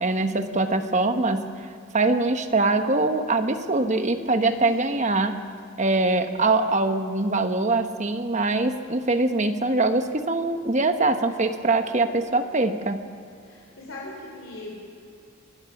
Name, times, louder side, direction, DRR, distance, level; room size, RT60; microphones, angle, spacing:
voice 1, 0.0-1.5 1.9-5.4 5.8-13.0, right 2 dB, 35° right, 7 dB, 1.1 m, -23 dB
voice 2, 4.1-5.0 13.4-14.8, left 2 dB, 65° left, -3 dB, 4.0 m, -40 dB
24.0 x 19.0 x 5.9 m, 2.5 s
head